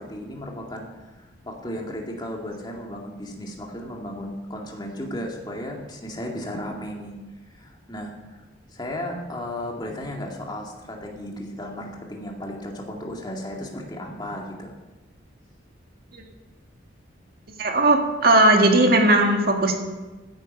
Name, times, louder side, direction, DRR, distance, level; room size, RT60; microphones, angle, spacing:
voice 1, 0.0-7.2 7.5-8.4 8.7-14.7, left 1 dB, 20° left, 0 dB, 2.2 m, -35 dB
voice 2, 17.6-19.8, right 2 dB, 50° right, 2 dB, 1.9 m, -17 dB
15.5 x 10.0 x 5.4 m, 1.2 s
head